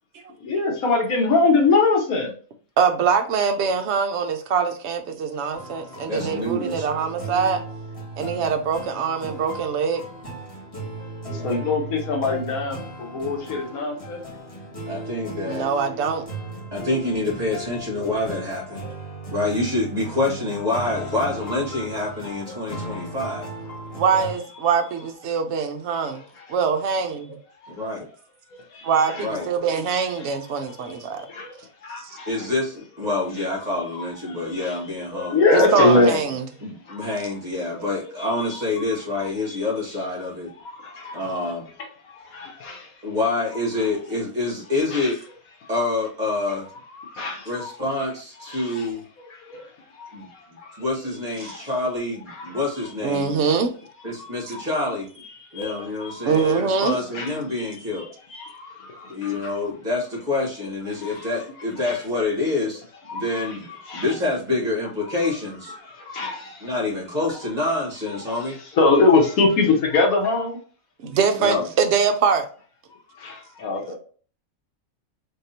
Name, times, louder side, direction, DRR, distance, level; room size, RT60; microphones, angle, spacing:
voice 1, 0.4-2.3 11.4-14.2 24.1-24.2 26.1-26.4 27.6-27.7 28.5-29.1 29.9-30.1 31.1-32.3 33.6-33.8 34.3-34.8 35.1-36.1 36.9-37.1 37.8-37.9 40.6-41.2 42.1-42.9 44.9-45.1 45.6-45.7 47.0-47.5 48.5-48.9 49.5-49.7 50.0-50.8 51.4-51.7 52.4-52.7 54.2-54.7 55.5-56.5 57.1-57.3 58.3-59.4 60.9-61.3 61.9-62.0 63.1-64.1 65.8-66.7 68.8-70.6 73.2-74.0, left 3 dB, 80° left, 1.5 m, -24 dB
voice 2, 2.8-7.6 8.2-10.0 15.5-16.2 23.9-26.2 26.5-27.3 28.8-29.1 29.5-31.3 35.5-36.4 53.0-53.7 56.3-57.0 71.0-72.5, right 6 dB, 60° right, 0.9 m, -23 dB
sound 1, 5.5-24.4, right 1 dB, 25° left, 1.6 m, -36 dB
voice 3, 6.1-6.9 11.2-11.7 14.9-15.7 16.7-18.9 19.3-23.5 27.7-28.1 29.2-29.5 32.3-35.4 35.7-36.2 36.6-40.5 41.1-41.7 43.0-45.2 45.7-46.7 47.4-49.1 50.1-50.3 50.8-53.5 54.0-55.1 55.5-58.1 59.1-62.8 63.1-65.7 66.6-68.6 71.4-71.7, left 2 dB, 30° right, 1.9 m, -27 dB
3.8 x 3.5 x 2.8 m
omnidirectional pair, 1.5 m